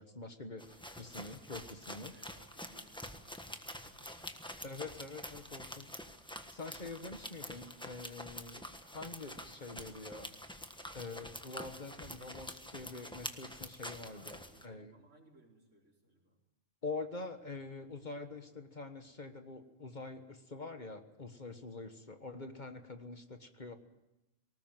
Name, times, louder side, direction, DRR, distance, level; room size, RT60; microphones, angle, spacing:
voice 1, 0.0-2.2 4.6-6.0 6.3-10.3 10.9-14.4 14.6-14.9 16.8-23.8, left 3 dB, 40° left, 8 dB, 1.5 m, -45 dB
sound 1, 0.6-14.6, equal, 5° left, 1.3 m, -47 dB
voice 2, 2.1-4.3 14.1-16.4, right 2 dB, 85° right, -1 dB, 5.0 m, -64 dB
19.5 x 19.0 x 9.1 m, 0.96 s
omnidirectional pair, 1.3 m